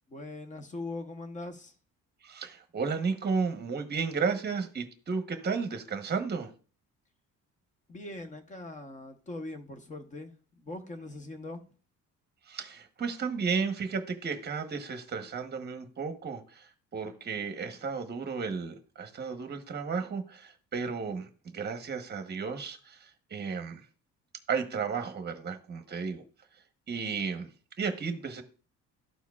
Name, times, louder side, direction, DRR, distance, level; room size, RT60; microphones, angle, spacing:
voice 1, 0.1-1.7 7.9-11.6, left 2 dB, 25° left, 0.9 m, -41 dB
voice 2, 2.2-6.5 12.5-23.9 24.5-26.2 26.9-27.5 27.8-28.4, right 5 dB, 30° right, 1.0 m, -33 dB
12.5 x 4.5 x 2.4 m
cardioid pair, 145°, 32 cm